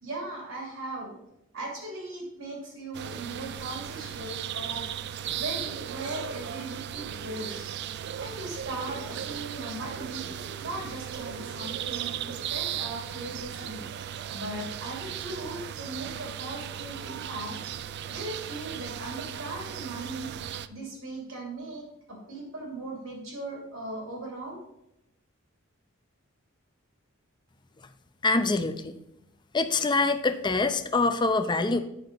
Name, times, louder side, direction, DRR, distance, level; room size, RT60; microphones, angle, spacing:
voice 1, 0.0-1.1 1.5-4.9 5.3-7.7 8.2-10.2 10.6-13.9 14.3-17.6 18.1-20.3 20.7-24.6, right 2 dB, 85° right, -1 dB, 2.6 m, -38 dB
sound 1, 2.9-20.7, right 9 dB, 55° right, 0.3 m, -36 dB
voice 2, 28.2-28.9 29.5-31.8, left 3 dB, 20° left, 9 dB, 0.5 m, -25 dB
8.6 x 5.4 x 4.0 m, 0.84 s
head